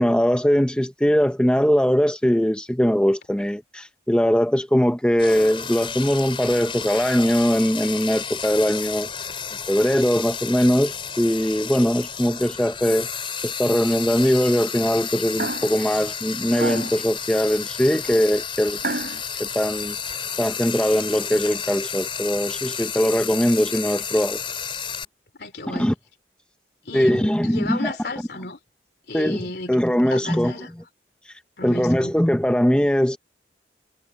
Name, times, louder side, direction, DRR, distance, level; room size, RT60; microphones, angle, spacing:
voice 1, 0.0-9.1 9.7-13.1 13.4-18.8 19.4-20.0 20.4-24.4 25.7-25.9 26.9-27.9 29.1-30.7 31.3-31.4 31.6-33.2, equal, 5° left, 0.7 m, -21 dB
Frying (food), 5.2-25.0, left 7 dB, 30° left, 4.5 m, -32 dB
sound 1, 15.4-15.8 16.5-17.1 18.8-19.2, right 2 dB, 60° right, 5.2 m, -29 dB
voice 2, 25.4-25.9 26.8-28.6 29.1-30.7 31.6-32.1, left 2 dB, 60° left, 3.3 m, -34 dB
head